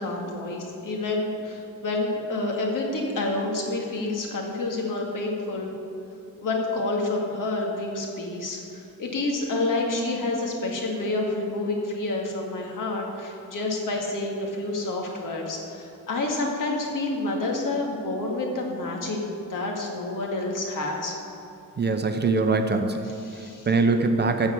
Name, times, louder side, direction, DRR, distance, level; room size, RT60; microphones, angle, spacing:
voice 1, 0.0-5.7 6.4-8.6 9.0-19.2 19.5-21.2 23.2-23.7, left 2 dB, 65° left, 0 dB, 1.9 m, -28 dB
voice 2, 21.8-23.1 23.7-24.5, right 3 dB, 30° right, 6 dB, 0.6 m, -22 dB
14.0 x 4.7 x 7.0 m, 2.6 s
wide cardioid pair, 145°, 34 cm